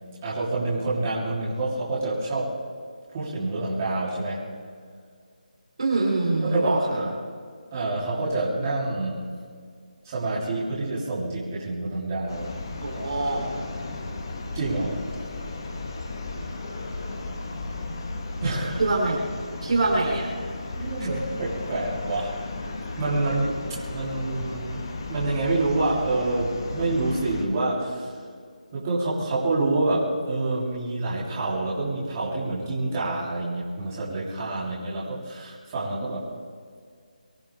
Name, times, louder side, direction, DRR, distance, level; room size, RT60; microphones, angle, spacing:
voice 1, 0.2-2.5 3.1-4.4 6.4-7.1 7.7-9.3 10.0-12.7 14.5-15.0 18.4-18.8 20.8-22.6 23.0-24.8 25.1-28.1 28.7-36.3, right 2 dB, 20° right, -8 dB, 3.3 m, -27 dB
voice 2, 5.8-6.8 12.8-13.5 18.8-19.2 19.6-20.3, right 2 dB, 45° right, -2 dB, 3.3 m, -24 dB
sound 1, 12.3-27.4, left 3 dB, 30° left, 1.4 m, -35 dB
24.0 x 14.5 x 3.6 m, 2.1 s
figure-of-eight pair, 175°, 4 cm